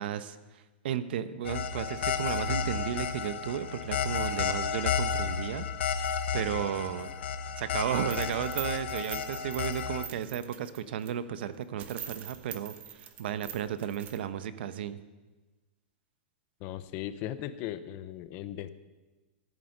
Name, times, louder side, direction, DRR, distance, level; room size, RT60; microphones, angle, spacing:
voice 1, 0.0-7.1 7.6-15.0, right 9 dB, 65° right, 13 dB, 0.9 m, -34 dB
sound 1, 1.4-10.1, left 7 dB, 80° left, 1.0 m, -32 dB
sound 2, 8.0-11.1 11.5-11.6 11.8-14.2, right 10 dB, 25° right, 1.0 m, -44 dB
voice 2, 16.6-18.7, left 12 dB, 35° left, 13 dB, 0.7 m, -37 dB
14.5 x 9.1 x 6.7 m, 1.2 s
supercardioid pair, 160°, 6 cm